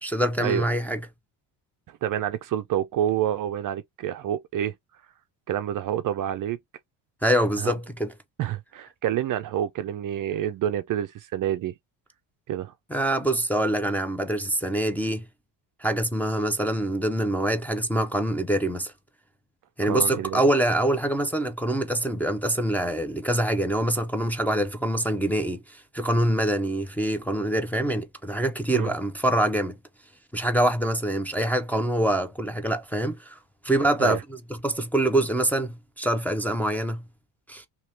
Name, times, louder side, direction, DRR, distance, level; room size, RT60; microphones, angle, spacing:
voice 1, 0.0-1.0 7.2-8.1 12.9-15.2 15.8-18.9 19.8-29.8 30.3-33.4 33.6-34.2 34.6-37.0 37.5-37.7, right 1 dB, 5° left, 0.5 m, -25 dB
voice 2, 2.0-4.7 5.5-6.6 7.6-7.7 8.4-11.7 12.5-12.7 19.9-20.4 28.7-28.9 34.0-34.2, right 10 dB, 45° right, 0.4 m, -28 dB
2.9 x 2.9 x 3.3 m
cardioid pair, 100°, 45 cm